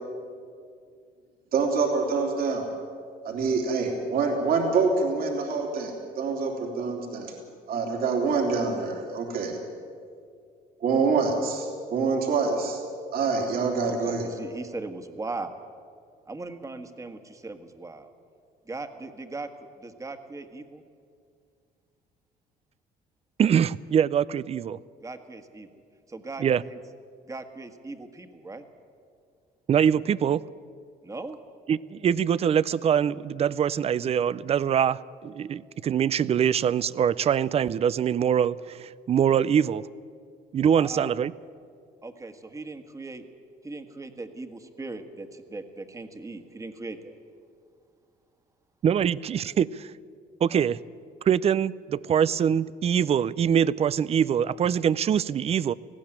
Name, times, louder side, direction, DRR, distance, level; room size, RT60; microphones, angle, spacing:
voice 1, 1.5-2.7 3.2-7.3 7.7-9.6 10.8-12.8 13.1-14.2, right 4 dB, 60° right, 1 dB, 3.2 m, -26 dB
voice 2, 13.8-15.6 16.3-18.1 18.7-19.5 19.8-20.8 25.0-25.7 26.1-26.8 27.2-28.6 31.0-31.4 40.7-41.2 42.0-43.2 43.6-47.2 50.5-50.6, right 3 dB, 20° right, 7 dB, 1.6 m, -39 dB
voice 3, 23.4-24.8 26.4-26.6 29.7-30.4 31.7-39.9 40.5-41.3 48.8-49.9 50.4-50.8 51.3-55.7, right 8 dB, 35° right, 20 dB, 0.5 m, -24 dB
19.0 x 16.0 x 9.0 m, 2.2 s
cardioid pair, 110°, 17 cm